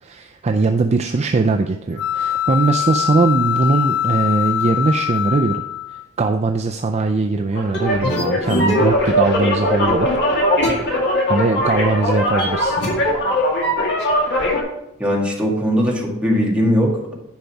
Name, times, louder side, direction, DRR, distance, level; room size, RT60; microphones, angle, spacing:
voice 1, 0.0-5.6 6.2-10.1 11.3-12.7, right 3 dB, 30° right, 5 dB, 0.4 m, -20 dB
sound 1, 2.0-6.0, left 11 dB, 75° left, 0.4 m, -22 dB
sound 2, 7.5-14.6, left 1 dB, 55° left, 2.0 m, -19 dB
voice 2, 15.0-17.1, equal, 5° right, -3 dB, 1.8 m, -19 dB
10.5 x 5.3 x 4.6 m, 0.86 s
head